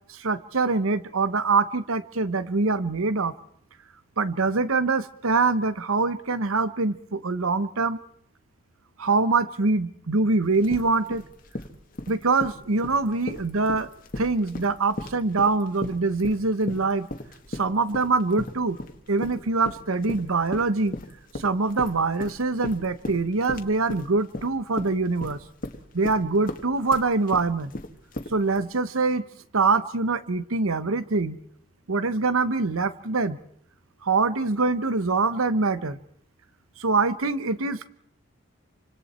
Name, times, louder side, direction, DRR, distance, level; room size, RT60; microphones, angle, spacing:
voice 1, 0.1-3.3 4.2-8.0 9.0-11.2 12.1-13.9 14.2-17.1 17.5-18.8 19.1-21.0 21.3-25.4 25.9-27.7 28.3-29.2 29.5-31.4 31.9-33.4 34.0-36.0 36.8-37.9, right 3 dB, 80° right, 14 dB, 1.0 m, -24 dB
sound 1, 10.4-28.6, left 1 dB, 40° left, 1.6 m, -36 dB
27.0 x 25.5 x 4.4 m, 0.67 s
head